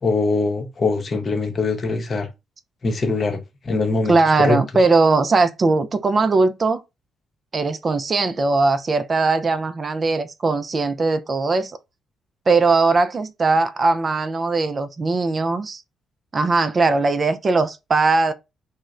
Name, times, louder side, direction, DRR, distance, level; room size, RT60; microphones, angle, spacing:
voice 1, 0.0-2.3 2.8-4.6, left 3 dB, 40° left, 0.7 m, -22 dB
voice 2, 4.1-6.8 7.5-11.8 12.5-15.8 16.3-18.3, right 3 dB, 40° right, 0.3 m, -19 dB
2.8 x 2.1 x 2.4 m
hypercardioid pair, 45°, 0 cm